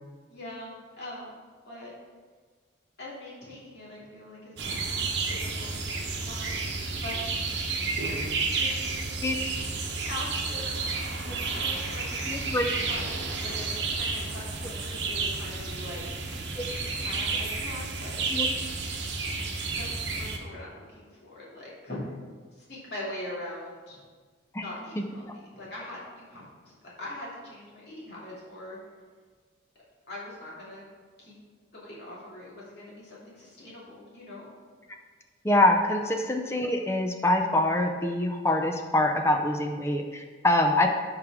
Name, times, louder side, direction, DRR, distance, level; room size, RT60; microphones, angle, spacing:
voice 1, 0.3-1.4 1.6-1.9 3.0-5.8 6.2-7.2 8.5-9.4 10.1-10.7 11.4-12.5 12.8-18.5 19.7-22.0 22.5-24.0 24.5-28.8 30.1-30.8 31.2-31.3 31.7-34.5, left 1 dB, 55° left, -6 dB, 2.6 m, -42 dB
sound 1, 4.6-20.4, right 4 dB, 60° right, 1.0 m, -31 dB
voice 2, 12.3-12.7 16.6-16.7 18.3-18.5 24.5-24.6 25.0-25.1 35.4-40.9, left 1 dB, 15° left, 3 dB, 0.5 m, -25 dB
13.0 x 4.9 x 3.6 m, 1.5 s
head